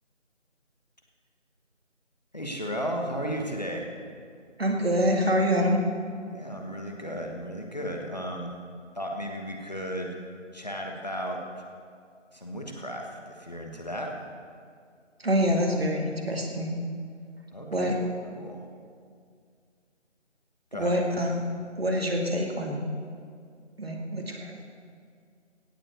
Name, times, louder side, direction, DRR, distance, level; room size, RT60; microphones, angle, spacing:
voice 1, 2.3-3.9 6.3-8.5 8.9-10.2 10.5-11.6 12.3-14.1 17.5-17.9 18.3-18.6 20.7-21.0, equal, 35° left, 1 dB, 1.3 m, -34 dB
voice 2, 4.6-5.8 15.2-16.8 17.7-18.0 20.7-21.5 21.8-22.8 23.8-24.6, equal, 50° right, 1 dB, 2.2 m, -26 dB
17.0 x 7.5 x 6.9 m, 2.2 s
figure-of-eight pair, 175°, 37 cm